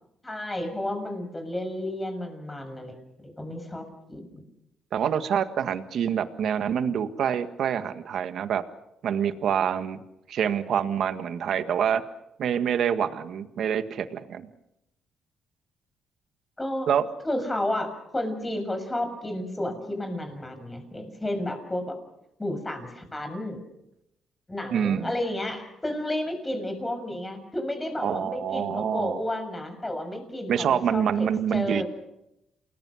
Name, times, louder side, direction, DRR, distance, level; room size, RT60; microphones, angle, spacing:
voice 1, 0.2-2.9 3.2-4.4 16.6-16.9 17.2-22.0 22.4-23.6 24.5-31.8, left 1 dB, 15° left, 7 dB, 6.4 m, -32 dB
voice 2, 4.9-8.6 9.0-10.0 10.3-12.0 12.4-14.5 16.9-17.0 24.7-25.1 28.0-29.2 30.5-31.8, right 8 dB, 65° right, 10 dB, 1.6 m, -26 dB
29.0 x 21.0 x 6.4 m, 0.84 s
cardioid pair, 90°, 0 cm